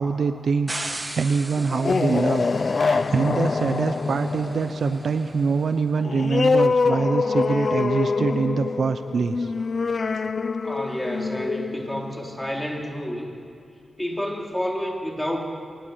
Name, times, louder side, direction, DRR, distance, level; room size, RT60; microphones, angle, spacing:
voice 1, 0.0-2.4 2.7-9.5, right 5 dB, 55° right, 9 dB, 0.8 m, -24 dB
sound 1, 0.7-5.8, right 2 dB, 20° right, 1.4 m, -38 dB
sound 2, 1.6-12.8, left 4 dB, 40° left, 0.5 m, -25 dB
voice 2, 10.6-13.3 14.0-15.4, equal, 5° left, 0 dB, 3.0 m, -29 dB
22.5 x 17.5 x 9.4 m, 2.4 s
wide cardioid pair, 165°, 0 cm